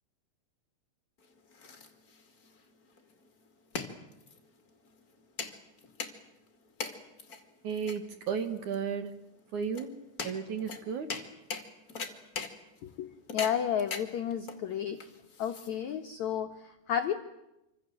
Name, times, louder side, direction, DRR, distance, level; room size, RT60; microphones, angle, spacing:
sound 1, 1.2-16.1, left 4 dB, 30° left, 1.8 m, -42 dB
voice 1, 7.6-9.1 9.5-10.0 10.2-11.2, right 6 dB, 60° right, 8 dB, 2.2 m, -34 dB
voice 2, 12.8-15.0 15.4-17.1, left 9 dB, 75° left, 5 dB, 1.7 m, -32 dB
27.5 x 25.5 x 7.7 m, 0.91 s
omnidirectional pair, 5.0 m